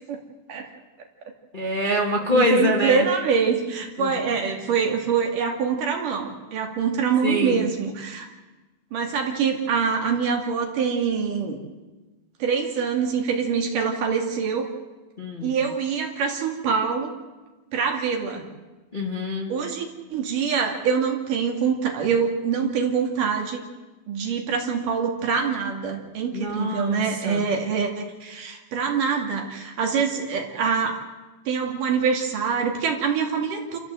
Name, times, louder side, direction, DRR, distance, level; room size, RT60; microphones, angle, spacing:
voice 1, 1.5-3.1 4.0-4.1 7.2-7.7 15.2-15.6 18.9-19.5 26.3-27.4, left 1 dB, 40° left, 0 dB, 0.7 m, -25 dB
voice 2, 2.3-8.3 8.9-11.6 12.4-14.7 15.4-17.1 17.7-18.5 19.5-23.6 24.1-31.0 31.5-33.8, right 6 dB, 50° right, 2 dB, 3.6 m, -25 dB
27.5 x 14.5 x 7.8 m, 1.2 s
omnidirectional pair, 5.2 m